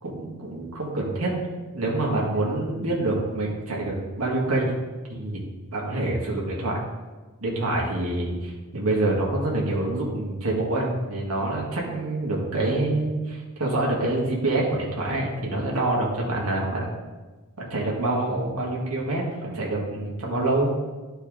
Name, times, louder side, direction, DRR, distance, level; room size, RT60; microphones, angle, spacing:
voice 1, 0.0-1.3 1.7-4.7 5.1-5.4 5.7-6.8 7.4-8.3 8.7-16.9 17.6-20.8, right 2 dB, 75° right, -3 dB, 1.8 m, -26 dB
11.5 x 4.4 x 3.7 m, 1.3 s
head